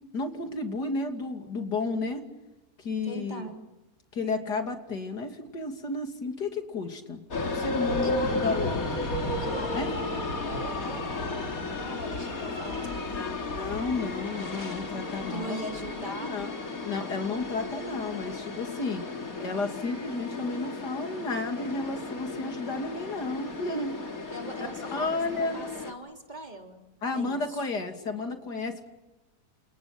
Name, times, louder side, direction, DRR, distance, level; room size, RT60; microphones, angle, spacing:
voice 1, 0.1-2.3 2.8-3.5 4.1-7.2 7.5-9.1 9.7-9.9 13.1-15.6 16.1-16.5 16.8-19.0 19.4-24.0 24.9-25.6 27.0-28.9, left 3 dB, 85° left, 5 dB, 3.4 m, -32 dB
voice 2, 3.0-3.5 8.0-8.4 9.4-13.3 15.3-16.6 24.3-26.8 27.1-27.6, right 1 dB, 25° right, 2 dB, 3.9 m, -40 dB
sound 1, 7.3-25.9, left 3 dB, 60° left, 3.1 m, -34 dB
30.0 x 28.0 x 6.1 m, 1.0 s
omnidirectional pair, 1.7 m